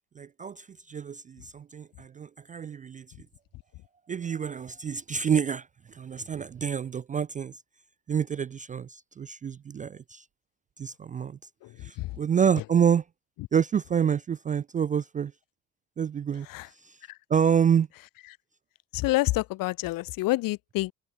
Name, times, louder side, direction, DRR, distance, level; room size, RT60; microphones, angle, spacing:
voice 1, 0.2-3.3 4.1-7.5 8.1-10.2 10.8-11.4 11.8-13.0 13.5-15.3 16.0-16.5 16.8-17.0 17.3-17.9, right 7 dB, 20° right, 0.3 m, -27 dB
voice 2, 18.9-20.9, left 19 dB, 50° left, 0.7 m, -27 dB
open air
figure-of-eight pair, 50°, 43 cm